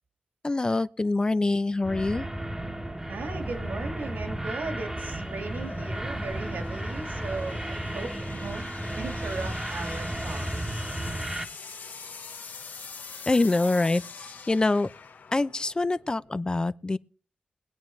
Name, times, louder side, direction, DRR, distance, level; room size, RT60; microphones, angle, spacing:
voice 1, 0.4-2.3 13.3-14.0 14.5-14.9 15.3-17.0, left 2 dB, 30° left, 0.6 m, -25 dB
sound 1, 1.0-16.4, left 5 dB, 70° left, 1.0 m, -46 dB
sound 2, 1.8-11.4, right 1 dB, 15° right, 1.2 m, -33 dB
voice 2, 3.1-8.7 9.0-10.5, right 3 dB, 80° right, 2.0 m, -37 dB
22.0 x 8.8 x 3.2 m
cardioid pair, 70°, 3 cm